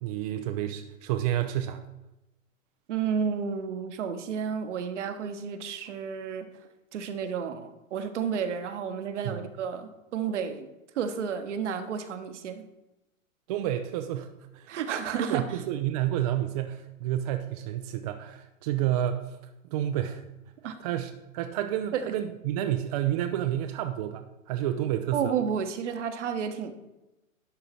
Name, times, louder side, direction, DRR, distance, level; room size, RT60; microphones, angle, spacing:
voice 1, 0.0-1.8 9.2-9.4 13.5-14.7 15.2-19.2 19.7-20.2 20.8-25.3, right 12 dB, 30° right, 7 dB, 0.5 m, -30 dB
voice 2, 2.9-6.5 6.9-10.7 10.9-12.7 14.7-15.6 20.6-20.7 21.9-22.1 25.1-26.7, right 7 dB, 60° right, 8 dB, 1.2 m, -31 dB
11.0 x 3.9 x 6.0 m, 0.98 s
figure-of-eight pair, 115°, 41 cm